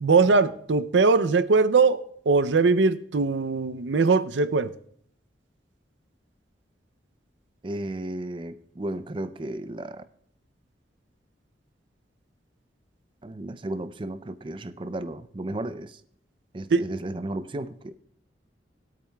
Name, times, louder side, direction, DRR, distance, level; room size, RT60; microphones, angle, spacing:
voice 1, 0.0-2.0 2.3-4.7 16.7-16.8, right 4 dB, 85° right, 12 dB, 0.5 m, -21 dB
voice 2, 7.6-10.0 13.2-16.0 16.5-18.0, right 1 dB, 30° right, 11 dB, 0.5 m, -34 dB
20.5 x 8.5 x 2.3 m, 0.65 s
head